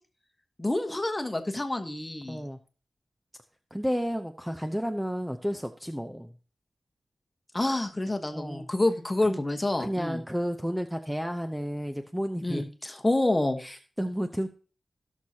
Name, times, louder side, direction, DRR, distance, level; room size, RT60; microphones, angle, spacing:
voice 1, 0.6-2.4 7.5-10.2 12.4-13.6, left 2 dB, 20° left, 6 dB, 1.2 m, -28 dB
voice 2, 2.3-2.6 3.7-6.3 8.3-8.7 9.3-9.4 9.8-12.6 13.6-14.5, equal, 5° right, 6 dB, 0.6 m, -32 dB
17.0 x 6.4 x 2.8 m, 0.36 s
wide cardioid pair, 85°, 0 cm